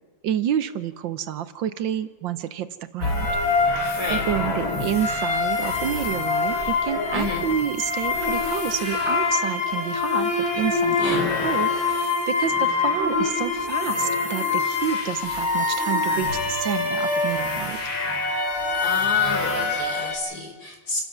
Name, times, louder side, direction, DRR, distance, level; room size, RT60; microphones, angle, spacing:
voice 1, 0.2-2.7 2.9-3.3 4.1-17.8, right 10 dB, 75° right, 12 dB, 1.5 m, -29 dB
sound 1, 3.0-20.2, left 4 dB, 80° left, 3.7 m, -24 dB
voice 2, 7.1-7.4 11.0-11.2 18.7-21.0, left 1 dB, 50° left, 2 dB, 4.5 m, -31 dB
28.5 x 13.0 x 7.2 m, 1.3 s
omnidirectional pair, 2.1 m